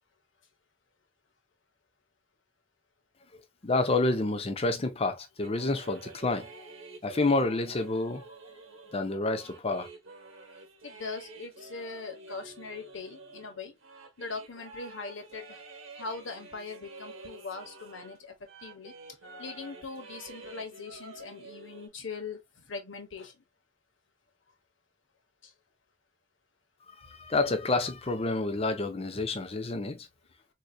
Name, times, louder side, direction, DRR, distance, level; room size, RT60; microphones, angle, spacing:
voice 1, 3.6-6.5 7.0-8.2 8.9-9.9 26.9-30.1, left 2 dB, 30° left, 0.6 m, -29 dB
sound 1, 5.4-18.2 18.5-21.9, right 3 dB, 90° right, 1.0 m, -49 dB
voice 2, 10.8-13.7 14.2-15.6 15.9-18.9 19.4-23.3 25.4-25.5, left 4 dB, 70° left, 0.9 m, -41 dB
3.8 x 2.8 x 2.2 m
head